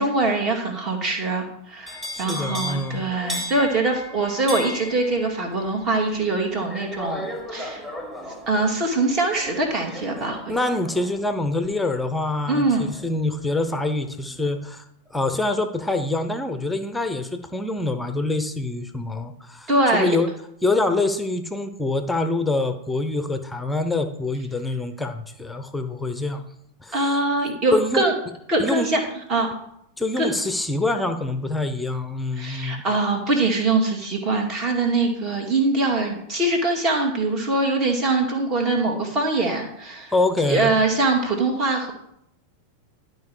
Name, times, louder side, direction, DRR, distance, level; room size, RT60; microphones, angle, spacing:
voice 1, 0.0-7.8 8.5-10.5 12.5-12.9 19.7-20.2 26.9-28.1 28.5-29.0 29.3-29.5 30.2-30.3 32.4-40.1 40.5-41.9, right 2 dB, 35° right, 2 dB, 2.1 m, -23 dB
sound 1, 1.9-13.8 14.2-14.6, left 1 dB, 10° right, 2.0 m, -37 dB
voice 2, 2.1-3.0 10.5-14.8 15.1-20.3 20.6-26.4 26.8-27.2 27.7-28.0 28.6-28.9 30.0-32.8 40.1-40.7, left 2 dB, 5° left, 8 dB, 0.8 m, -25 dB
11.5 x 4.8 x 4.8 m, 0.77 s
figure-of-eight pair, 90°, 0 cm